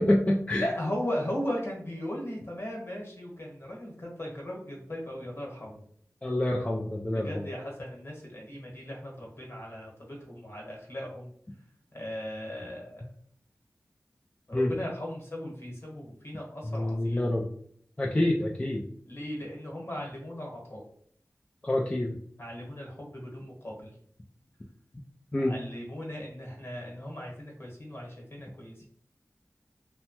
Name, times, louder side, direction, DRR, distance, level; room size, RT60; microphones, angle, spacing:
voice 1, 0.0-0.7 6.2-7.3 14.5-14.7 16.7-17.5 18.0-18.8 21.6-22.2 25.3-25.6, left 1 dB, 20° left, -2 dB, 0.4 m, -26 dB
voice 2, 0.6-5.8 7.1-11.3 11.9-13.0 14.5-17.3 19.0-20.8 22.4-23.9 25.4-28.9, left 1 dB, 50° left, -2 dB, 1.1 m, -37 dB
2.9 x 2.2 x 2.9 m, 0.62 s
wide cardioid pair, 55°, 6 cm